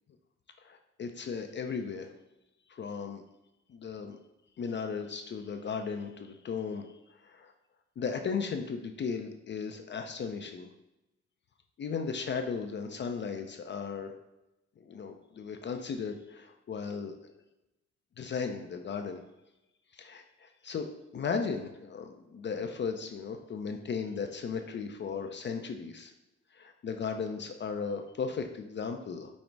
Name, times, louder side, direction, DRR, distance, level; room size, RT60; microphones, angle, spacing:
voice 1, 0.6-2.1 2.7-3.2 3.7-4.2 4.6-7.5 8.0-10.7 11.8-14.2 14.8-17.3 18.2-19.2 19.9-20.9 21.1-26.1 26.5-29.3, left 5 dB, 40° left, 6 dB, 0.4 m, -36 dB
5.2 x 2.0 x 4.5 m, 0.93 s
cardioid pair, 90°, 30 cm